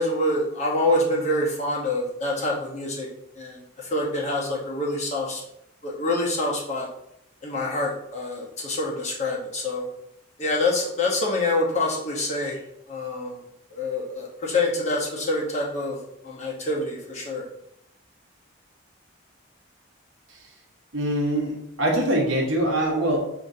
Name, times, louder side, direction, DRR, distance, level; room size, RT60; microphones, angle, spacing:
voice 1, 0.0-3.1 3.4-5.4 5.8-6.9 7.4-9.9 10.4-12.6 12.9-13.4 13.7-16.0 16.2-17.4, left 2 dB, 35° left, -3 dB, 1.0 m, -26 dB
voice 2, 20.9-23.2, right 1 dB, 75° right, 0 dB, 1.1 m, -23 dB
6.2 x 2.8 x 2.7 m, 0.78 s
head